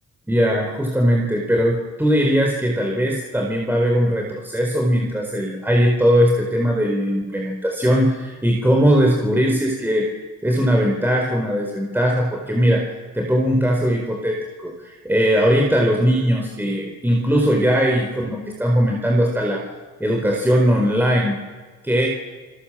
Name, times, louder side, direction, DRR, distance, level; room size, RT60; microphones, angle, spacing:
voice 1, 0.3-12.9 13.1-19.6 20.0-21.4 21.8-22.1, equal, 5° right, 0 dB, 4.3 m, -19 dB
30.0 x 21.0 x 7.5 m, 1.4 s
cardioid pair, 90°, 30 cm